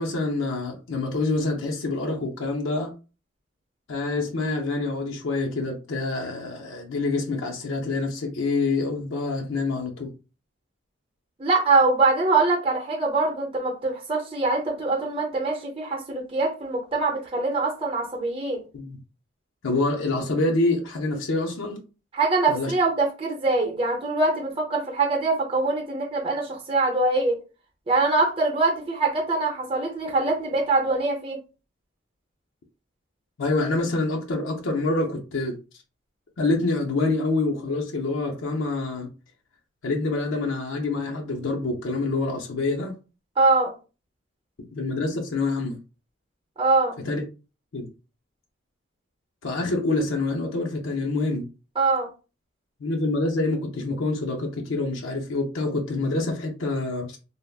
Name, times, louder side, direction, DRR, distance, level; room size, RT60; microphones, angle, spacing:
voice 1, 0.0-2.9 3.9-10.1 18.7-19.0 19.6-21.8 22.5-22.7 33.4-35.6 36.4-39.1 39.8-42.9 44.8-45.8 47.0-47.2 47.7-47.9 49.4-51.5 52.8-57.1, left 2 dB, 90° left, 0.6 m, -26 dB
voice 2, 11.4-18.6 22.1-27.4 27.9-31.4 43.4-43.7 46.6-47.0 51.8-52.1, right 3 dB, 30° right, 0.7 m, -23 dB
3.3 x 2.0 x 2.3 m
head